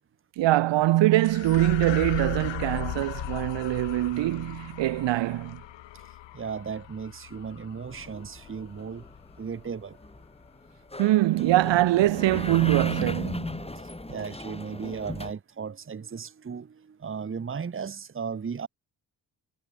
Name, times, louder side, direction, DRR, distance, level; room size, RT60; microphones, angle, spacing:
voice 1, 0.4-5.6 11.0-13.7, right 16 dB, 85° right, 1.3 m, -23 dB
sound 1, 1.2-9.9, left 15 dB, 90° left, 3.6 m, -38 dB
voice 2, 5.9-9.1 9.4-10.0 13.7-18.7, right 6 dB, 30° right, 1.1 m, -36 dB
sound 2, 7.9-15.3, left 2 dB, 15° left, 5.2 m, -37 dB
cardioid pair, 65°, 43 cm